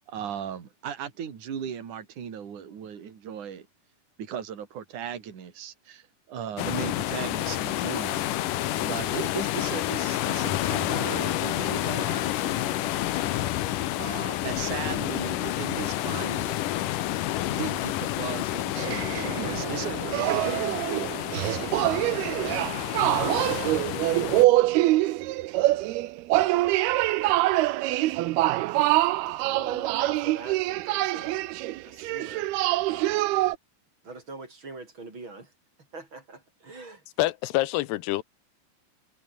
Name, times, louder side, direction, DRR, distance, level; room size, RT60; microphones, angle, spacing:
voice 1, 0.1-3.7 4.2-8.2 8.8-12.9 14.0-16.6 17.5-22.6 32.9-33.2, right 8 dB, 50° right, 4.4 m, -37 dB
sound 1, 6.6-24.4, left 14 dB, 70° left, 2.3 m, -29 dB
sound 2, 18.8-33.6, right 17 dB, 80° right, 2.8 m, -25 dB
voice 2, 29.2-31.4 31.8-32.5 32.8-33.2 34.0-35.5 35.9-37.0, right 3 dB, 30° right, 6.4 m, -43 dB
voice 3, 37.2-38.2, left 17 dB, 85° left, 3.0 m, -26 dB
omnidirectional pair, 4.6 m